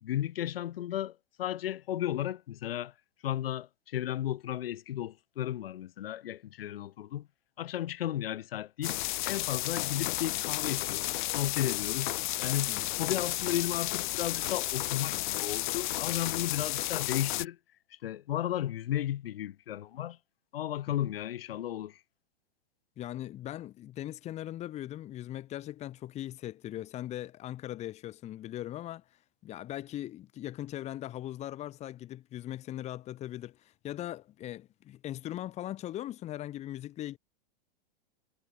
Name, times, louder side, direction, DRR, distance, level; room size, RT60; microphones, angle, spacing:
voice 1, 0.0-2.9 3.2-7.3 7.6-9.0 9.2-12.1 12.4-17.6 18.0-20.2 20.5-22.0, left 12 dB, 70° left, 4.5 m, -34 dB
sound 1, 8.8-17.5, left 17 dB, 50° left, 3.2 m, -32 dB
voice 2, 23.0-29.0 29.4-37.2, left 13 dB, 20° left, 3.2 m, -40 dB
supercardioid pair, 160°, 30 cm